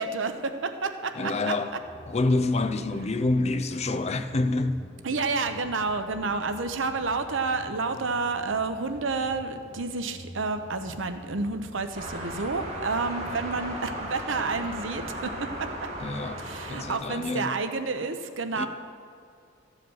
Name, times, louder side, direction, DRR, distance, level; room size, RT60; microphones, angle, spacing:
voice 1, 0.0-1.5 5.0-15.9 16.4-18.7, right 4 dB, 85° right, 0.8 m, -30 dB
voice 2, 1.1-1.7 2.1-4.8 16.0-17.5 18.6-18.7, left 2 dB, 35° left, 0.5 m, -27 dB
sound 1, 1.7-13.5, equal, 85° left, 1.4 m, -48 dB
sound 2, 11.9-16.9, right 1 dB, 35° right, 2.0 m, -36 dB
14.0 x 4.9 x 7.8 m
head